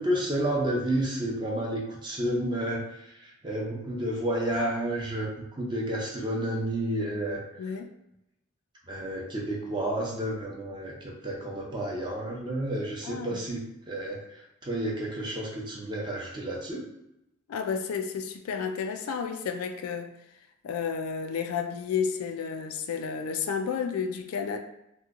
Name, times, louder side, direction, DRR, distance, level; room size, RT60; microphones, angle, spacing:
voice 1, 0.0-7.4 8.9-14.2 14.6-16.9, right 1 dB, 20° right, 0.6 m, -31 dB
voice 2, 7.6-7.9 13.0-13.4 17.5-20.1 20.6-24.6, left 6 dB, 85° left, 0.3 m, -31 dB
2.9 x 2.2 x 3.5 m
head